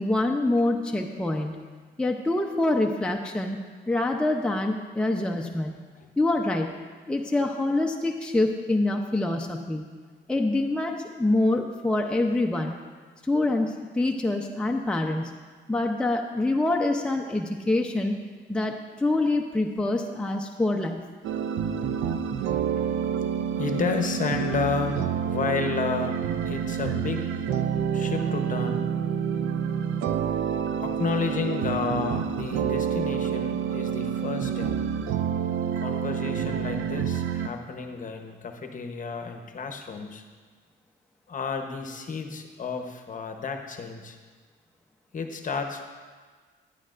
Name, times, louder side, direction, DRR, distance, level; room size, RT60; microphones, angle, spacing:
voice 1, 0.0-1.7 2.0-3.6 3.9-5.8 6.2-9.9 10.3-12.8 13.3-15.4 15.7-18.2 18.5-21.1, left 2 dB, 5° left, 2 dB, 0.6 m, -26 dB
voice 2, 0.5-1.2 22.8-22.9 23.6-26.2 26.4-27.3 27.9-28.9 30.8-34.8 35.8-40.2 41.3-44.2 45.1-45.8, left 5 dB, 40° left, 5 dB, 0.9 m, -31 dB
sound 1, 21.2-37.5, right 7 dB, 85° right, 0.5 m, -28 dB
11.5 x 9.9 x 2.5 m, 1.5 s
cardioid pair, 90°, 20 cm